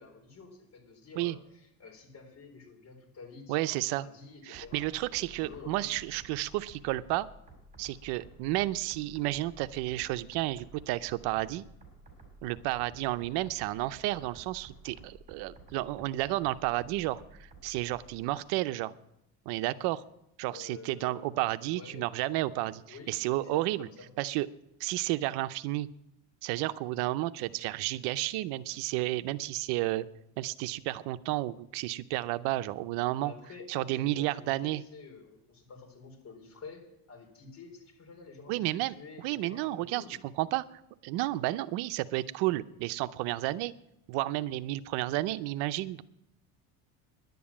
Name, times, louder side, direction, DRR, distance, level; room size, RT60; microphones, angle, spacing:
voice 1, 0.0-4.9 5.2-5.9 20.5-22.1 22.9-24.1 33.2-36.8 37.1-40.1, left 4 dB, 45° left, 2 dB, 4.4 m, -49 dB
voice 2, 3.5-4.1 4.5-7.3 7.8-11.6 12.4-18.9 19.5-20.0 20.4-22.8 23.1-23.9 24.2-24.5 24.8-25.9 26.4-30.0 30.4-33.3 33.7-34.8 38.5-40.6 41.0-43.7 44.1-46.0, right 17 dB, 75° right, 13 dB, 0.7 m, -32 dB
sound 1, 4.5-18.1, right 2 dB, 20° right, 5.2 m, -53 dB
11.0 x 9.4 x 8.7 m, 0.81 s
cardioid pair, 125°, 39 cm